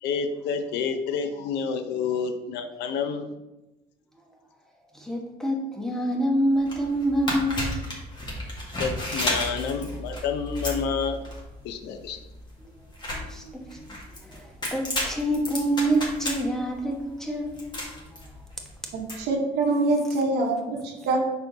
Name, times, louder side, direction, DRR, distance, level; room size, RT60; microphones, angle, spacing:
voice 1, 0.0-3.3 8.8-11.2 11.6-12.2, left 6 dB, 85° left, 7 dB, 0.7 m, -29 dB
voice 2, 4.9-7.8 12.6-12.7 13.1-14.0 14.3-17.9, right 1 dB, 5° left, 0 dB, 1.2 m, -27 dB
sound 1, 6.5-19.2, left 1 dB, 25° left, 1.8 m, -33 dB
voice 3, 18.9-21.2, right 2 dB, 75° right, 0 dB, 1.1 m, -25 dB
5.6 x 4.4 x 3.9 m, 1.0 s
cardioid pair, 110°, 17 cm